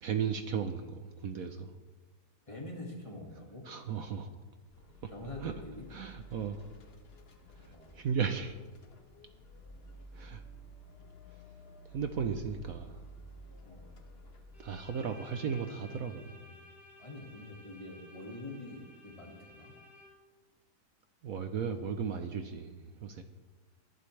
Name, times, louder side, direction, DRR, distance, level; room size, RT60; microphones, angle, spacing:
voice 1, 0.0-1.7 3.6-4.3 5.0-5.1 5.4-5.5 5.9-6.7 7.6-8.5 10.1-10.4 11.3-11.4 11.9-13.1 14.6-16.3 21.2-23.2, right 7 dB, 65° right, 7 dB, 1.2 m, -35 dB
voice 2, 2.5-3.7 5.1-5.9 7.7-8.0 12.8-13.0 13.6-13.9 16.2-16.6 17.0-19.7, left 2 dB, 20° left, -1 dB, 2.0 m, -46 dB
sound 1, 4.7-14.9, equal, 40° left, 1.3 m, -52 dB
Bowed string instrument, 14.5-20.4, left 1 dB, ahead, 2.8 m, -55 dB
20.0 x 11.5 x 3.3 m, 1.3 s
omnidirectional pair, 1.8 m